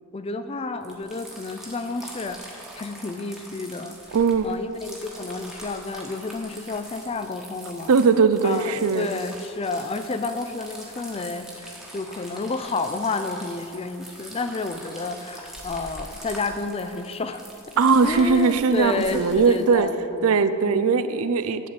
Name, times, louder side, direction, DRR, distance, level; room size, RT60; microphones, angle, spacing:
voice 1, 0.1-4.2 4.4-7.9 8.4-17.4 18.0-20.9, left 3 dB, 25° left, 9 dB, 0.4 m, -30 dB
sound 1, 0.8-19.8, right 1 dB, ahead, 1.2 m, -43 dB
voice 2, 4.1-4.5 7.9-9.1 17.8-19.9 20.2-21.7, right 5 dB, 80° right, 11 dB, 0.5 m, -20 dB
11.0 x 4.1 x 7.7 m, 2.7 s
head